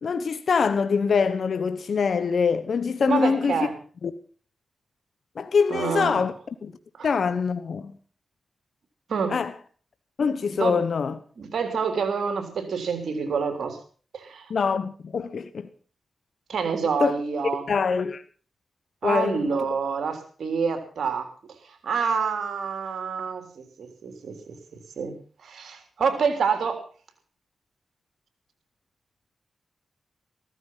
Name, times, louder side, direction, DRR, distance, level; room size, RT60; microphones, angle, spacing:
voice 1, 0.0-3.6 4.0-4.1 5.4-6.3 6.6-6.7 7.0-7.9 9.3-9.5 10.2-11.2 14.5-15.7 17.0-17.2 17.7-18.2 19.0-19.4, left 5 dB, 70° left, 1.2 m, -24 dB
voice 2, 3.1-3.7 5.7-6.2 7.0-7.1 9.1-9.4 10.5-10.8 11.4-13.8 14.1-14.5 16.5-17.6 19.0-21.3 21.8-24.6 25.0-25.2 25.4-26.8, right 5 dB, 75° right, 3.6 m, -27 dB
15.0 x 14.0 x 5.7 m
cardioid pair, 50°, 0 cm